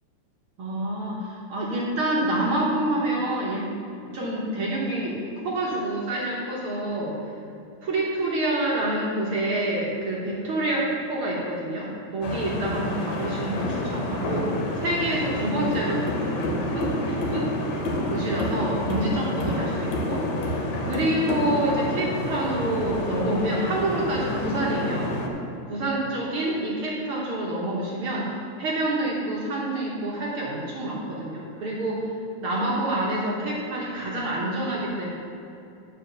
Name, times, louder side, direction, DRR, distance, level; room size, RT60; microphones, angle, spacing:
voice 1, 0.6-3.7 4.1-7.2 7.8-14.5 14.8-17.5 18.1-20.2 20.8-25.2 25.7-28.3 28.6-32.1 32.4-35.1, right 1 dB, 55° right, -4 dB, 1.6 m, -27 dB
sound 1, 12.2-25.3, left 1 dB, 70° left, 2.2 m, -29 dB
9.7 x 4.9 x 6.7 m, 2.7 s
omnidirectional pair, 3.5 m